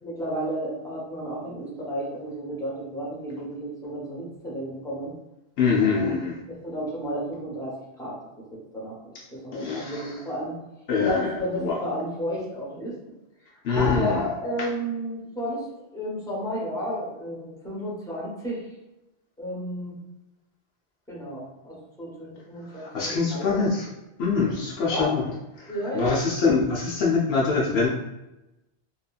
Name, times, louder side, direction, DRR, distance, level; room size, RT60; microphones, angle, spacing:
voice 1, 0.0-5.1 5.8-10.5 11.0-12.9 13.7-15.7 15.9-18.7 19.4-19.9 21.1-23.6 24.8-25.4 25.7-26.2, equal, 5° left, -6 dB, 0.8 m, -32 dB
voice 2, 5.6-6.4 9.5-10.1 10.9-11.8 13.6-14.2 22.7-23.9 24.2-25.3 25.6-27.9, left 4 dB, 75° left, -3 dB, 0.8 m, -24 dB
3.0 x 2.4 x 2.3 m, 0.97 s
omnidirectional pair, 1.1 m